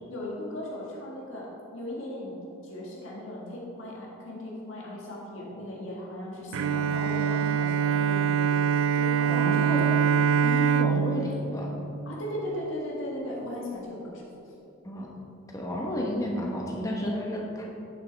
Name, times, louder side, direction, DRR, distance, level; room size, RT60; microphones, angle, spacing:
voice 1, 0.1-2.3 2.6-10.1 12.1-14.2, left 1 dB, 65° left, -3 dB, 1.9 m, -37 dB
Bowed string instrument, 6.5-12.7, right 7 dB, 75° right, 0.3 m, -25 dB
voice 2, 9.3-9.9 10.4-11.7 14.8-15.1 15.5-17.7, equal, 15° left, -2 dB, 1.1 m, -32 dB
10.0 x 5.7 x 4.1 m, 2.9 s
head